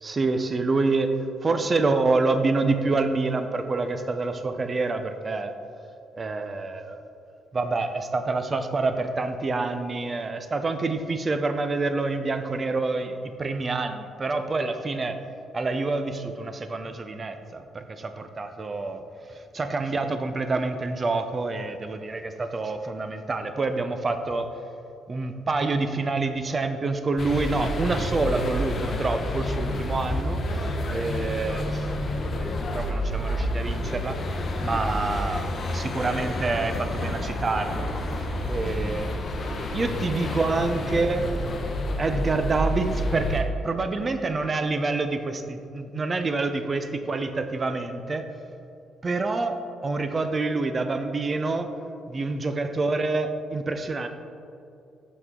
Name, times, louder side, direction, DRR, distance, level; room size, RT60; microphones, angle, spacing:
voice 1, 0.0-1.1 1.4-5.5 6.2-7.0 7.5-15.2 15.5-19.0 19.3-24.5 25.1-34.2 34.6-39.1 39.7-41.3 42.0-48.2 49.0-51.7 52.1-54.1, right 3 dB, 35° right, 8 dB, 0.5 m, -27 dB
sound 1, 27.2-43.4, left 1 dB, 50° left, 0.7 m, -29 dB
6.1 x 5.7 x 3.7 m, 2.6 s
cardioid pair, 90°, 0 cm